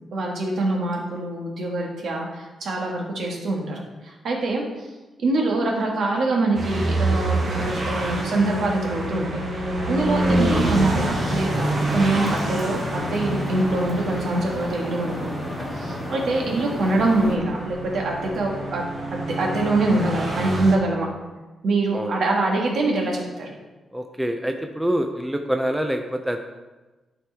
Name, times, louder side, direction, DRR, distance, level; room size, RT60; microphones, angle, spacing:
voice 1, 0.1-4.6 5.2-9.3 9.9-15.4 15.7-21.1 21.6-23.5, right 2 dB, 60° right, 0 dB, 1.6 m, -24 dB
sound 1, 6.5-20.7, right 2 dB, 40° right, 1.5 m, -27 dB
sound 2, 10.6-17.4, left 1 dB, 15° left, 1.4 m, -33 dB
voice 2, 23.9-26.4, equal, 5° right, 5 dB, 0.4 m, -25 dB
11.5 x 4.5 x 3.4 m, 1.2 s
wide cardioid pair, 170°, 0 cm